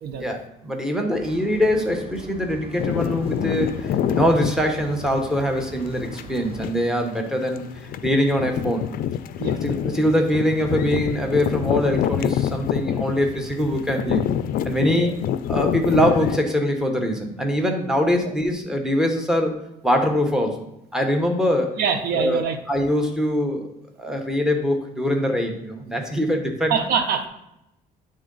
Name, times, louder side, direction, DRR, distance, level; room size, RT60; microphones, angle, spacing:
voice 1, 0.2-8.8 9.6-14.2 14.6-15.2 15.5-19.6 19.8-20.7 20.9-21.8 22.1-23.7 24.0-26.7, equal, 5° right, 3 dB, 1.1 m, -23 dB
sound 1, 1.1-6.6, right 3 dB, 35° right, 0.7 m, -41 dB
sound 2, 2.8-16.4, left 10 dB, 60° left, 0.4 m, -27 dB
voice 2, 21.8-22.6 26.7-27.3, right 6 dB, 70° right, 7 dB, 0.8 m, -24 dB
9.1 x 3.7 x 3.9 m, 0.86 s
cardioid pair, 110°, 17 cm